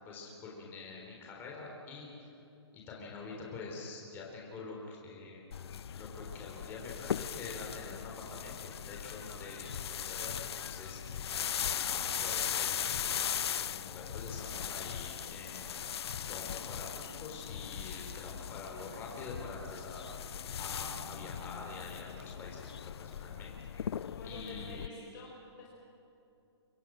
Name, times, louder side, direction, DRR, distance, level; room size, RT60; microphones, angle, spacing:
voice 1, 0.1-2.3 2.7-5.6 5.9-11.0 11.7-13.2 13.6-15.7 16.3-23.5 23.8-24.9, left 3 dB, 15° left, -2 dB, 3.6 m, -46 dB
sound 1, 5.5-24.9, left 8 dB, 65° left, 0.5 m, -39 dB
voice 2, 24.1-25.7, left 2 dB, 45° left, -4 dB, 5.1 m, -48 dB
26.5 x 24.5 x 6.3 m, 2.8 s
hypercardioid pair, 165°, 14 cm